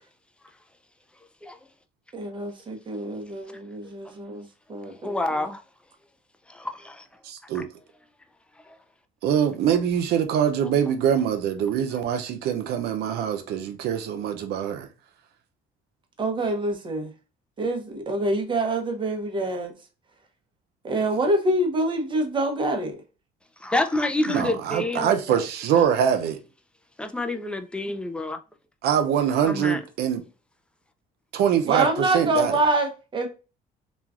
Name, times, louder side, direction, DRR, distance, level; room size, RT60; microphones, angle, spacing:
voice 1, 2.1-5.5 16.2-17.1 17.6-19.7 20.8-23.0 31.6-33.3, right 2 dB, 30° right, 0.8 m, -26 dB
voice 2, 5.0-5.6 6.5-7.0 7.5-7.6 23.6-25.2 27.0-28.4 29.4-29.8, left 2 dB, 5° left, 0.4 m, -28 dB
voice 3, 7.2-7.7 9.2-14.9 24.3-26.4 28.8-30.2 31.3-32.6, right 8 dB, 75° right, 0.6 m, -24 dB
3.0 x 2.3 x 2.4 m
cardioid pair, 110°, 17 cm